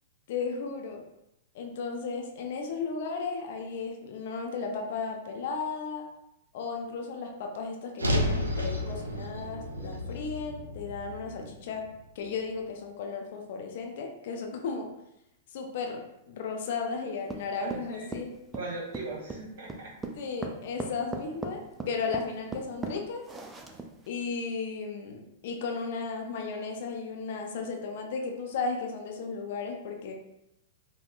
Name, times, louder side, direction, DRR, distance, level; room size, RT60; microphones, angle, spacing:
voice 1, 0.3-1.0 1.5-6.1 6.5-11.8 12.2-14.9 15.5-18.3 20.2-21.6 21.9-23.2 24.1-30.1, left 4 dB, 55° left, 2 dB, 0.5 m, -35 dB
sound 1, 8.0-12.3, left 1 dB, 85° right, 0.4 m, -32 dB
sound 2, 17.3-24.1, right 3 dB, 15° right, 0.3 m, -38 dB
voice 2, 17.6-19.9, right 3 dB, 50° right, -3 dB, 1.0 m, -39 dB
3.5 x 2.1 x 2.4 m, 0.85 s
figure-of-eight pair, 100°, 0 cm